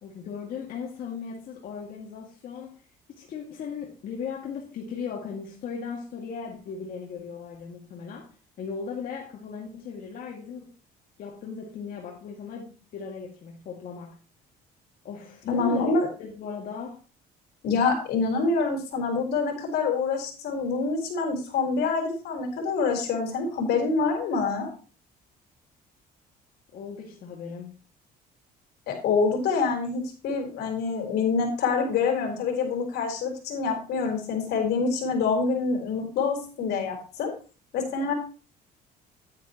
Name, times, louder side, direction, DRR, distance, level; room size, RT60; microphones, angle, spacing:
voice 1, 0.0-2.8 3.1-10.7 11.2-14.2 15.0-15.9 16.2-17.0 26.7-27.7, left 6 dB, 60° left, -2 dB, 2.1 m, -37 dB
voice 2, 15.5-16.1 17.6-24.7 28.9-37.3 37.7-38.1, left 4 dB, 75° left, 2 dB, 3.8 m, -26 dB
10.0 x 9.7 x 2.9 m, 0.36 s
cardioid pair, 110°, 17 cm